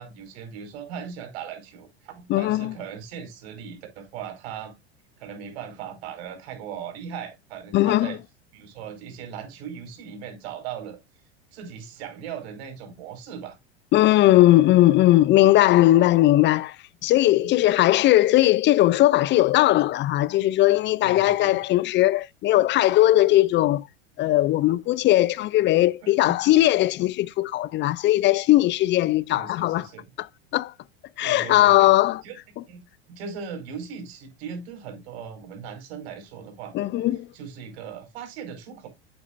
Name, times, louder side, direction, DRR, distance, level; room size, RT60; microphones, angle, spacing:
voice 1, 0.0-4.7 5.2-8.2 8.5-11.0 11.5-13.6 17.4-17.5 21.0-21.6 26.0-26.4 29.3-30.0 31.2-31.9 32.2-32.4 32.7-32.8 33.1-36.7 37.3-38.9, right 7 dB, 70° right, 5.2 m, -38 dB
voice 2, 2.3-2.7 7.7-8.1 13.9-16.8 17.0-23.8 24.2-29.9 30.2-30.3 30.5-30.7 31.2-32.2 36.7-37.3, left 15 dB, 35° left, 0.5 m, -19 dB
9.8 x 8.6 x 2.6 m
hypercardioid pair, 95°, 33 cm